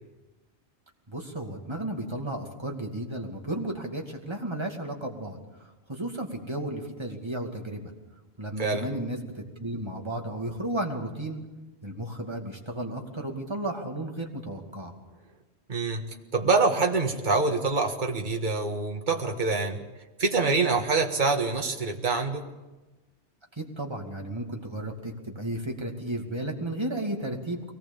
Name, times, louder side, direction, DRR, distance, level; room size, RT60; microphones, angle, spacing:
voice 1, 1.1-5.4 5.9-7.9 8.4-11.4 11.8-14.9 23.6-27.7, right 1 dB, 25° right, 1 dB, 2.6 m, -33 dB
voice 2, 8.6-8.9 15.7-16.0 16.3-19.8 20.2-22.5, right 3 dB, 45° right, 3 dB, 1.8 m, -25 dB
23.0 x 19.0 x 7.2 m, 1.1 s
omnidirectional pair, 1.1 m